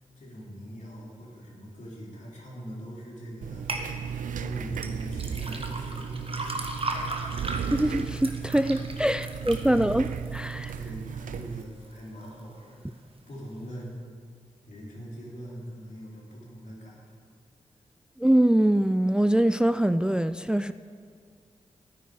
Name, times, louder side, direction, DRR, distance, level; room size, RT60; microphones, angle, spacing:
voice 1, 0.1-3.9 4.3-6.8 8.7-8.8 9.3-9.5 10.7-13.0 13.3-13.9 14.7-17.0, equal, 70° left, -4 dB, 3.1 m, -42 dB
sound 1, 3.4-11.6, right 7 dB, 85° right, 0.4 m, -35 dB
sound 2, 3.7-3.9 4.8-10.9 11.3-11.9 12.3-12.4, right 2 dB, 45° right, 1.3 m, -36 dB
voice 2, 7.7-10.7 18.2-20.7, right 1 dB, 5° right, 13 dB, 0.3 m, -23 dB
12.0 x 9.4 x 4.6 m, 2.1 s
cardioid pair, 40°, 13 cm